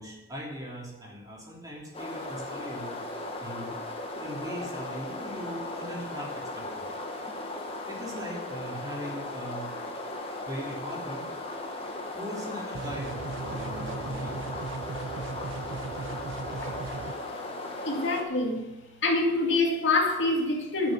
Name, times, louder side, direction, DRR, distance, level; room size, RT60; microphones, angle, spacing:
voice 1, 0.0-3.0 3.4-3.7 4.2-6.8 7.9-9.7 10.4-11.3 12.1-14.4, equal, 20° right, -3 dB, 3.0 m, -39 dB
sound 1, 1.9-18.2, left 2 dB, 30° left, 1.6 m, -37 dB
sound 2, 12.7-17.1, right 4 dB, 65° right, 0.5 m, -37 dB
voice 2, 17.8-18.7 19.0-20.9, left 2 dB, 60° left, 0 dB, 2.3 m, -25 dB
11.5 x 6.6 x 7.5 m, 1.0 s
head